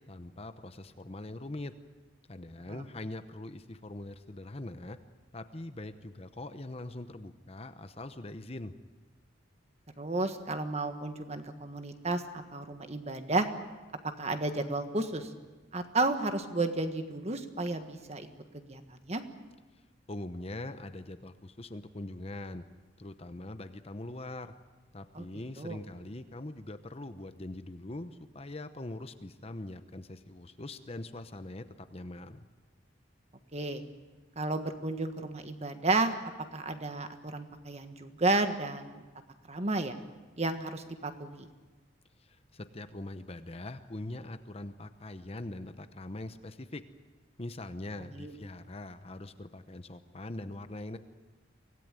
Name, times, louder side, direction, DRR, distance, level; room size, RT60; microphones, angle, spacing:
voice 1, 0.1-1.7 2.3-5.0 5.3-8.7 20.1-22.6 23.0-24.5 24.9-32.5 42.2-46.8 47.4-51.0, left 2 dB, 30° left, 10 dB, 0.9 m, -42 dB
voice 2, 10.0-13.5 14.0-15.3 15.7-18.3 18.5-19.2 25.1-25.2 25.6-25.8 33.5-33.8 34.3-36.1 36.5-39.0 39.5-40.0 40.4-41.5 48.1-48.4, right 2 dB, 35° right, 7 dB, 1.6 m, -32 dB
25.0 x 17.5 x 9.1 m, 1.3 s
head